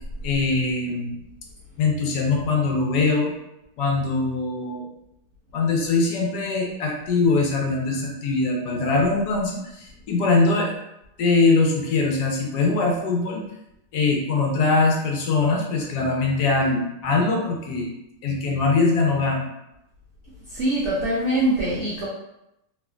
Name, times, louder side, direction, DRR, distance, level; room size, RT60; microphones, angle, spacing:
voice 1, 0.2-1.2 1.8-3.3 3.8-4.9 5.5-10.7 11.2-13.4 13.9-17.9 18.2-19.5, left 3 dB, 75° left, 0 dB, 1.2 m, -22 dB
voice 2, 20.5-22.1, right 1 dB, 75° right, -7 dB, 0.6 m, -23 dB
3.3 x 2.4 x 2.3 m, 0.86 s
omnidirectional pair, 1.9 m